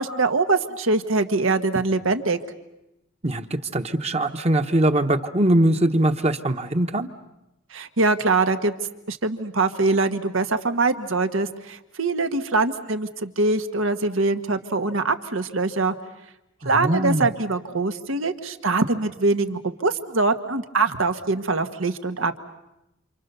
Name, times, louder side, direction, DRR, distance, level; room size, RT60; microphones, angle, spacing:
voice 1, 0.0-2.4 7.7-8.7 9.1-15.9 16.6-22.4, right 3 dB, 90° right, 8 dB, 1.5 m, -23 dB
voice 2, 3.2-7.1 16.6-17.3, right 1 dB, 30° right, 7 dB, 1.1 m, -22 dB
29.0 x 27.5 x 6.9 m, 0.90 s
head